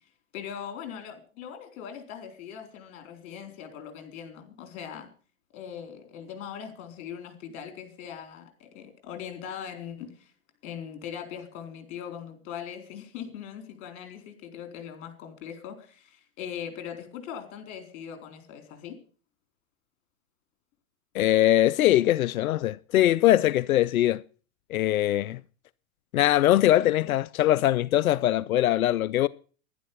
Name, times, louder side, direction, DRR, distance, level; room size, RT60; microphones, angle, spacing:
voice 1, 0.3-5.1 5.5-10.3 10.6-19.0, left 8 dB, 55° left, 4.2 m, -40 dB
voice 2, 21.1-24.2 24.7-25.4 26.1-29.3, left 14 dB, 85° left, 0.6 m, -22 dB
11.0 x 11.0 x 6.9 m
hypercardioid pair, 125°, 41 cm